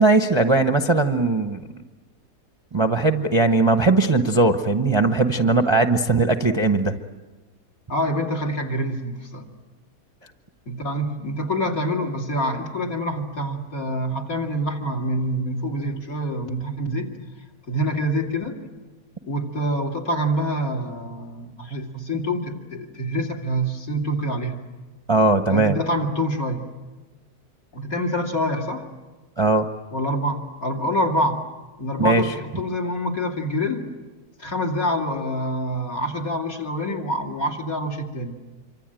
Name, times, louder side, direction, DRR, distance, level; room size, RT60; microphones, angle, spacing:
voice 1, 0.0-1.6 2.7-6.9 25.1-25.8 29.4-29.7 32.0-32.2, right 3 dB, 20° right, 8 dB, 0.8 m, -19 dB
voice 2, 7.9-9.5 10.7-17.1 17.7-18.6 19.2-24.6 25.5-26.7 27.7-28.9 29.9-31.4 31.8-33.9 34.4-38.4, equal, 60° left, 1 dB, 3.1 m, -26 dB
26.5 x 24.5 x 9.1 m, 1.2 s
omnidirectional pair, 1.7 m